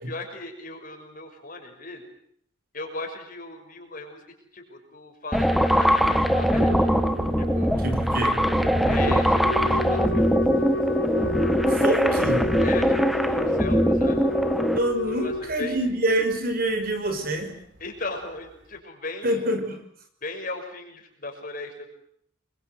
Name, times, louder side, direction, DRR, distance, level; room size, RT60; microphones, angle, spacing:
voice 1, 0.1-2.0 2.7-4.3 4.5-7.0 7.4-7.7 8.9-10.2 12.6-14.3 15.1-15.3 15.6-15.8 17.8-19.5 20.2-21.9, left 2 dB, 40° left, 4 dB, 6.2 m, -37 dB
sound 1, 5.3-14.8, equal, ahead, 1.4 m, -22 dB
Thunder, 6.0-18.0 18.2-18.3, right 1 dB, 65° right, 3.9 m, -37 dB
voice 2, 7.8-8.4 11.7-12.5 14.8-17.6 19.2-19.8, right 1 dB, 45° right, 7 dB, 5.4 m, -26 dB
Wind instrument woodwind instrument, 9.4-15.5, left 2 dB, 70° left, 1.3 m, -30 dB
28.0 x 23.5 x 8.0 m, 0.67 s
head